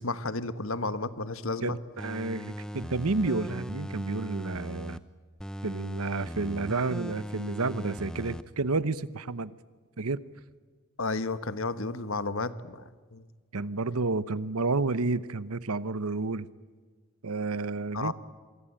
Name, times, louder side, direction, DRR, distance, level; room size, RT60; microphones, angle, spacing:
voice 1, 0.0-1.8 11.0-13.2 17.9-18.1, left 3 dB, 70° left, 13 dB, 1.3 m, -32 dB
voice 2, 1.6-5.0 5.6-9.5 10.0-10.2 13.5-16.5 17.2-18.1, right 3 dB, 85° right, 16 dB, 0.9 m, -30 dB
sound 1, 2.0-5.0 5.4-8.4 8.8-8.9, equal, 5° left, 0.7 m, -38 dB
26.5 x 23.0 x 8.9 m, 1.5 s
head